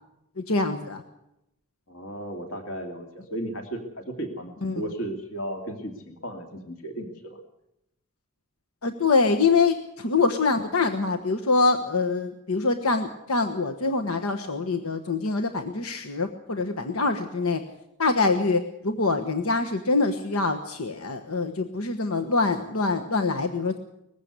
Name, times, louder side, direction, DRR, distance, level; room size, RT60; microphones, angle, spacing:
voice 1, 0.4-1.0 4.6-4.8 8.8-17.6 18.0-23.8, left 3 dB, 90° left, 6 dB, 1.3 m, -24 dB
voice 2, 1.9-7.4, right 1 dB, 65° left, 3 dB, 2.6 m, -35 dB
20.5 x 15.0 x 8.3 m, 0.84 s
head